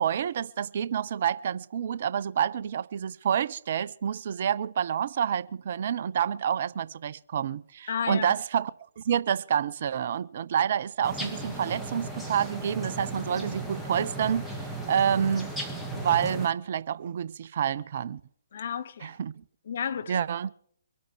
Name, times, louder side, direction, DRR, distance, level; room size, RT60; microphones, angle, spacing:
voice 1, 0.0-8.7 9.0-14.5 14.9-15.5 15.9-18.2 19.0-19.3 20.1-20.5, right 8 dB, 45° right, 0.5 m, -28 dB
voice 2, 7.9-8.3 18.5-19.1 19.7-20.2, left 7 dB, 50° left, 1.0 m, -32 dB
sound 1, 11.0-16.5, right 2 dB, ahead, 1.6 m, -36 dB
24.5 x 8.5 x 4.5 m
figure-of-eight pair, 130°, 0 cm